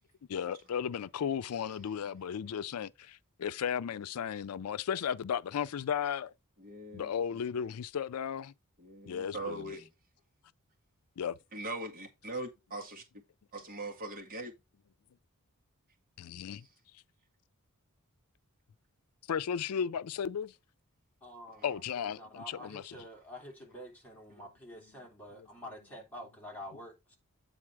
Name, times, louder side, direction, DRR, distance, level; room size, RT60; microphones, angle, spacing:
voice 1, 0.3-6.3 6.9-8.5 9.1-9.6 11.2-11.4 16.2-16.7 19.3-20.5 21.6-22.9, left 8 dB, 85° left, 0.4 m, -35 dB
voice 2, 6.6-7.1 8.8-9.9 11.5-13.0 13.5-14.5, right 2 dB, 40° right, 1.9 m, -41 dB
voice 3, 21.2-27.2, equal, 10° left, 2.9 m, -48 dB
8.7 x 4.0 x 4.7 m
head